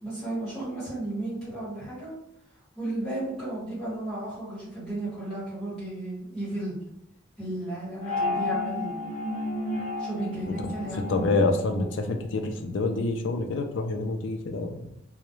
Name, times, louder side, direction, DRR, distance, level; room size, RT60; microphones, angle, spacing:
voice 1, 0.0-2.1 2.7-6.7 7.4-8.9 10.0-11.0, right 1 dB, ahead, -12 dB, 1.3 m, -34 dB
sound 1, 8.0-12.6, left 2 dB, 35° left, 0.7 m, -32 dB
voice 2, 10.9-14.8, left 3 dB, 75° left, 5 dB, 0.4 m, -27 dB
2.3 x 2.0 x 3.0 m, 0.77 s
head